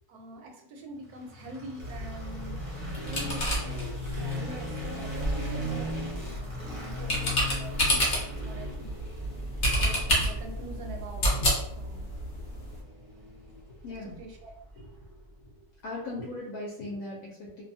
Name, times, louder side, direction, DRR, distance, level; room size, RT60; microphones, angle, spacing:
voice 1, 0.1-2.6 3.0-3.8 4.1-9.0 9.8-11.4 11.7-12.0 14.0-14.5, right 2 dB, 80° right, 2 dB, 1.1 m, -44 dB
sound 1, 1.0-15.2, left 1 dB, 25° right, 0.6 m, -39 dB
sound 2, 1.8-12.8, equal, 45° left, 0.8 m, -30 dB
voice 2, 13.7-14.2 14.8-15.5 15.8-17.6, left 2 dB, 70° left, -5 dB, 1.0 m, -39 dB
2.5 x 2.2 x 2.6 m, 0.80 s
omnidirectional pair, 1.7 m